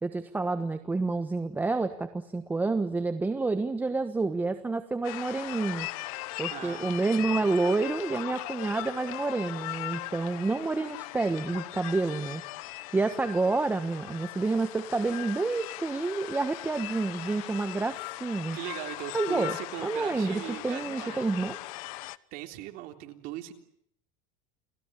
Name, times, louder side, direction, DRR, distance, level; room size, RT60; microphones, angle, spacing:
voice 1, 0.0-5.9 6.4-12.4 12.9-18.6 19.1-19.6 19.8-21.6, right 3 dB, 10° right, 9 dB, 1.3 m, -29 dB
sound 1, 5.0-22.2, left 20 dB, 75° left, 1.1 m, -39 dB
voice 2, 6.5-6.9 18.5-21.2 22.3-23.5, right 14 dB, 55° right, 5 dB, 3.5 m, -39 dB
30.0 x 19.5 x 9.9 m, 0.73 s
cardioid pair, 150°, 18 cm